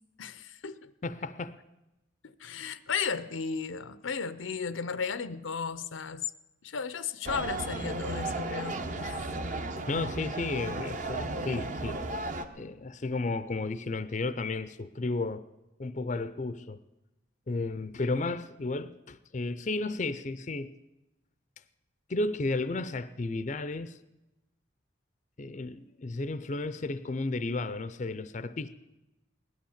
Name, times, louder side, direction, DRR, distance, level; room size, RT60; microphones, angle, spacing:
voice 1, 0.2-0.9 2.2-6.2 6.6-9.3, left 5 dB, 85° left, 0.6 m, -35 dB
voice 2, 1.0-1.6 9.9-12.0 12.6-15.4 15.8-16.8 17.5-20.8 22.1-24.0 25.4-28.8, left 3 dB, 40° left, 0.5 m, -33 dB
sound 1, 7.2-12.5, right 2 dB, 40° right, 0.9 m, -34 dB
17.0 x 12.0 x 7.2 m
head